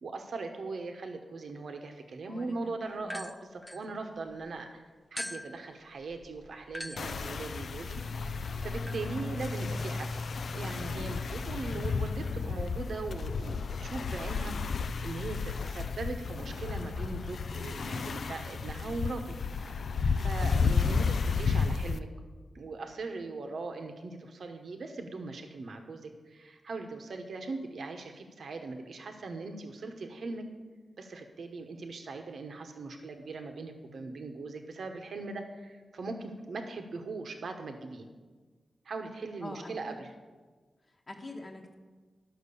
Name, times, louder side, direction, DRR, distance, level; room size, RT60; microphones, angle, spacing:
voice 1, 0.0-4.8 5.1-10.2 10.5-19.8 20.1-22.1 22.5-30.4 31.0-38.1 38.8-40.1, right 3 dB, 75° right, 5 dB, 1.0 m, -40 dB
voice 2, 2.3-3.2 39.4-40.0 40.9-41.7, left 1 dB, 30° left, 0 dB, 1.1 m, -45 dB
sound 1, 3.0-4.5 5.2-13.4, left 1 dB, 5° left, 0.5 m, -47 dB
sound 2, 7.0-22.0, left 5 dB, 70° left, 0.4 m, -32 dB
11.5 x 6.0 x 6.9 m, 1.4 s
wide cardioid pair, 100°, 0 cm